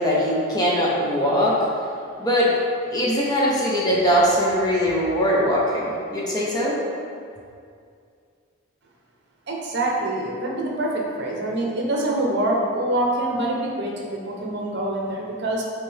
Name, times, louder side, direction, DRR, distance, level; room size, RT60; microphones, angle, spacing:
voice 1, 0.0-1.6 2.2-2.5 2.9-6.8, equal, 20° left, -5 dB, 1.0 m, -21 dB
voice 2, 9.5-15.6, right 1 dB, 55° right, -2 dB, 1.0 m, -25 dB
8.8 x 3.4 x 3.5 m, 2.3 s
head